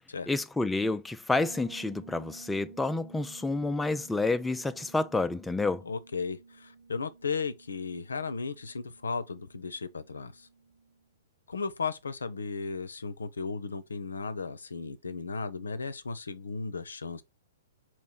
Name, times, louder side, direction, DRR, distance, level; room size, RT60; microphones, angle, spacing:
voice 1, 0.3-5.8, left 3 dB, 5° left, 0.3 m, -29 dB
Bass guitar, 1.4-11.0, right 4 dB, 85° right, 2.6 m, -53 dB
voice 2, 5.8-10.5 11.5-17.2, left 4 dB, 75° left, 0.6 m, -35 dB
4.3 x 3.1 x 3.9 m
figure-of-eight pair, 115°, 0 cm